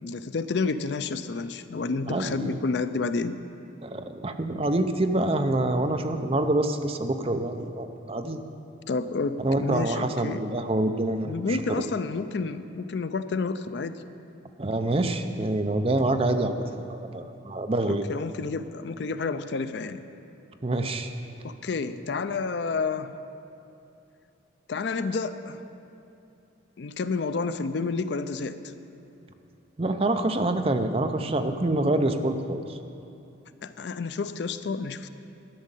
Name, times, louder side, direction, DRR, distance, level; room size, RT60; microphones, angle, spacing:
voice 1, 0.0-3.4 8.9-10.4 11.2-14.0 17.9-20.0 21.4-23.1 24.7-25.6 26.8-28.6 33.6-35.1, left 4 dB, 60° left, 12 dB, 0.4 m, -30 dB
voice 2, 2.1-2.6 3.8-8.4 9.4-11.6 14.6-18.0 20.6-21.1 29.8-32.8, right 2 dB, 30° right, 7 dB, 0.5 m, -26 dB
12.0 x 6.4 x 9.0 m, 2.8 s
head